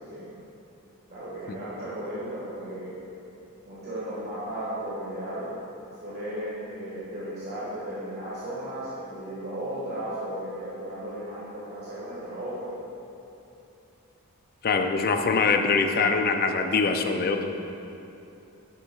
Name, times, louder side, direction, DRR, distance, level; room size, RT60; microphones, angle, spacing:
voice 1, 1.1-2.9 3.6-5.5 6.0-12.7, right 1 dB, 45° right, -11 dB, 1.6 m, -35 dB
voice 2, 14.6-17.5, left 4 dB, 40° left, 5 dB, 0.5 m, -23 dB
11.5 x 6.9 x 2.3 m, 2.9 s
head